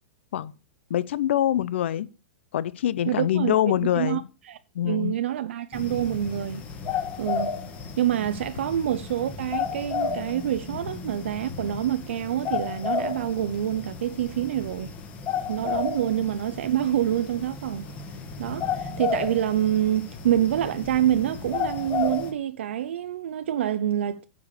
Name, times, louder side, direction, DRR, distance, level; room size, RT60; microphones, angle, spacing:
voice 1, 0.9-2.1 2.5-4.2 4.7-5.2, left 11 dB, 70° left, 0.7 m, -24 dB
voice 2, 3.0-4.6 4.8-6.6 7.2-7.5 8.0-14.9 15.5-17.9 18.4-24.2, right 11 dB, 70° right, 0.6 m, -26 dB
sound 1, 5.7-22.3, left 6 dB, 20° left, 1.5 m, -33 dB
9.6 x 5.0 x 6.6 m
supercardioid pair, 165°, 7 cm